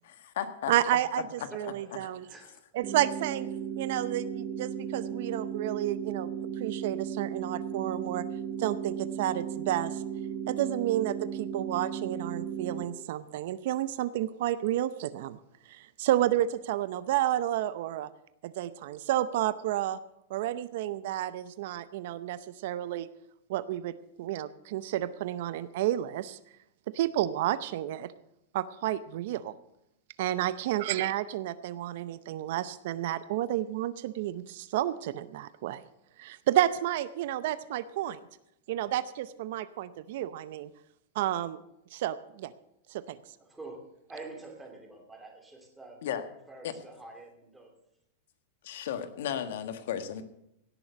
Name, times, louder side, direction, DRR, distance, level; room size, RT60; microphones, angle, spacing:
voice 1, 0.0-0.7 46.0-46.2 46.6-46.7 48.6-50.2, left 9 dB, 65° left, 9 dB, 1.5 m, -34 dB
voice 2, 0.7-1.2 1.5-2.3 2.7-3.5 3.8-8.3 8.6-10.0 10.5-15.4 15.7-18.1 18.4-20.0 20.3-23.1 23.5-26.4 26.9-28.1 28.5-29.5 30.2-35.8 36.2-38.2 38.7-40.7 41.2-41.6 41.9-42.5 42.9-43.2, right 13 dB, 55° right, 15 dB, 0.6 m, -31 dB
voice 3, 1.4-1.9 2.2-2.6 43.4-43.8 44.1-46.1 46.5-47.7 49.2-49.4, right 3 dB, 5° right, 2 dB, 2.8 m, -47 dB
sound 1, 2.8-12.8, right 8 dB, 35° right, 1.3 m, -36 dB
17.0 x 6.9 x 8.0 m, 0.81 s
supercardioid pair, 160°, 0 cm